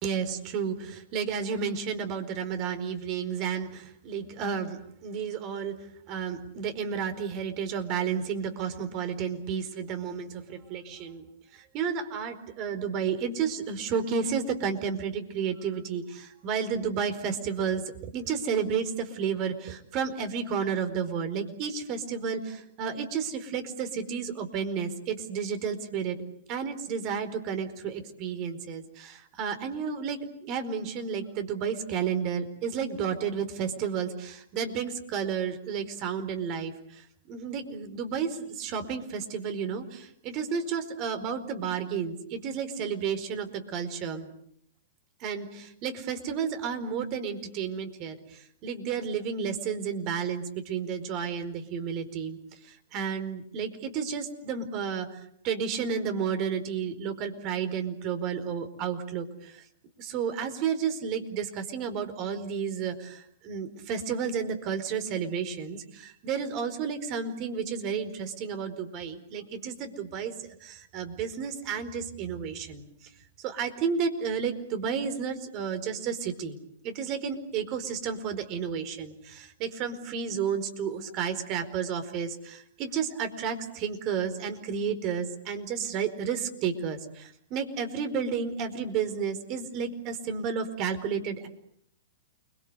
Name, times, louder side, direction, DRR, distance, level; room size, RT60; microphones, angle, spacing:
voice 1, 0.0-5.8 6.1-11.2 11.5-26.2 26.5-44.3 45.2-59.6 60.0-72.9 73.4-91.5, right 6 dB, 40° right, 9 dB, 4.6 m, -32 dB
29.5 x 22.5 x 8.1 m, 0.69 s
hypercardioid pair, 120°, 0 cm